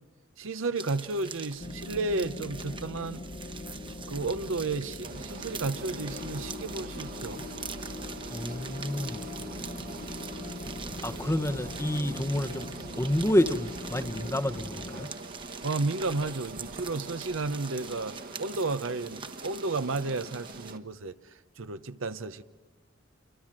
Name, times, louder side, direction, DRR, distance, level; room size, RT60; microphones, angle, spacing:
voice 1, 0.4-3.2 4.1-7.5 15.6-22.4, right 3 dB, 75° right, 0.9 m, -32 dB
sound 1, 0.8-20.7, right 5 dB, 25° right, 1.1 m, -44 dB
sound 2, 1.6-15.1, left 2 dB, 35° left, 1.1 m, -41 dB
sound 3, 5.0-20.8, right 3 dB, 50° right, 1.4 m, -44 dB
voice 2, 8.3-9.2 11.0-12.7 13.0-15.1, left 1 dB, 15° left, 1.0 m, -28 dB
28.0 x 24.0 x 7.6 m
head